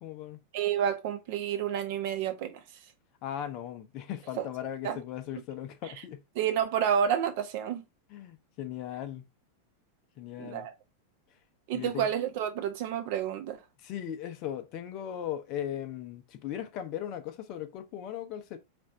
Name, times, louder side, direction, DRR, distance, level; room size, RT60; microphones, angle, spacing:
voice 1, 0.0-0.4 3.2-6.2 8.1-9.2 10.2-10.7 11.7-12.1 13.8-18.6, left 10 dB, 40° left, 0.7 m, -38 dB
voice 2, 0.5-2.6 4.4-4.5 4.8-5.0 6.4-7.8 10.4-10.7 11.7-13.6, right 9 dB, 50° right, 0.8 m, -29 dB
4.2 x 2.6 x 4.4 m
figure-of-eight pair, 90°, 0 cm